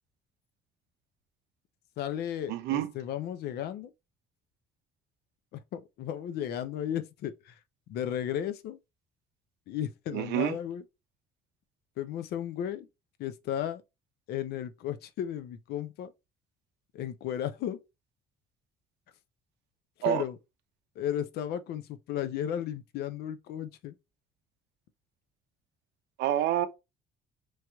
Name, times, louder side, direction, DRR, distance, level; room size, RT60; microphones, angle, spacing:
voice 1, 2.0-3.9 5.5-7.6 7.9-8.8 9.7-10.8 12.0-12.9 13.2-13.8 14.3-16.1 16.9-17.8 20.1-20.4 21.0-23.9, left 10 dB, 70° left, 0.5 m, -34 dB
voice 2, 2.5-2.9 10.1-10.6 20.0-20.2 26.2-26.7, right 12 dB, 80° right, 0.5 m, -27 dB
3.1 x 2.9 x 2.3 m
cardioid pair, 110°, 17 cm